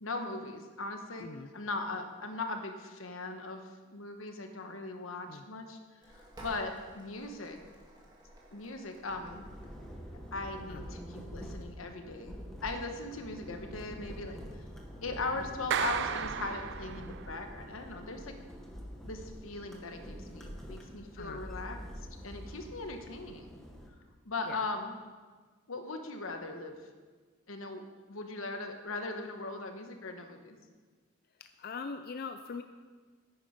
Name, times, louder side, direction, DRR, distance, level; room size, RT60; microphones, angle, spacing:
voice 1, 0.0-1.3 1.5-5.8 6.4-7.6 8.5-9.5 10.3-14.6 15.0-18.3 19.0-21.8 22.2-23.5 24.2-24.9 25.7-26.8 27.5-27.8 28.1-30.6, left 3 dB, 85° left, 5 dB, 1.2 m, -39 dB
voice 2, 1.2-1.5 5.3-5.5 10.7-10.8 21.1-21.4 24.4-24.7 31.4-32.6, left 4 dB, 50° left, 8 dB, 0.4 m, -42 dB
sound 1, 6.0-16.1, right 1 dB, 20° right, 2.0 m, -57 dB
sound 2, 9.1-23.9, equal, ahead, 1.2 m, -46 dB
Clapping, 15.7-17.4, right 8 dB, 55° right, 0.4 m, -34 dB
9.6 x 9.1 x 5.1 m, 1.5 s
head